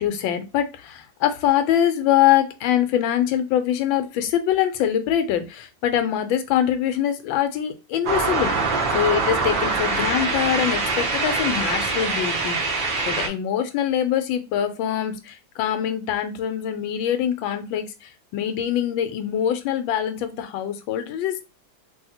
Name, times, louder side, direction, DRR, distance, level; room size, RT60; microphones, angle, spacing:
voice 1, 0.0-21.4, left 10 dB, 90° left, 8 dB, 1.4 m, -24 dB
sound 1, 8.0-13.3, right 3 dB, 75° right, 0.4 m, -24 dB
3.2 x 2.7 x 2.7 m, 0.27 s
omnidirectional pair, 2.1 m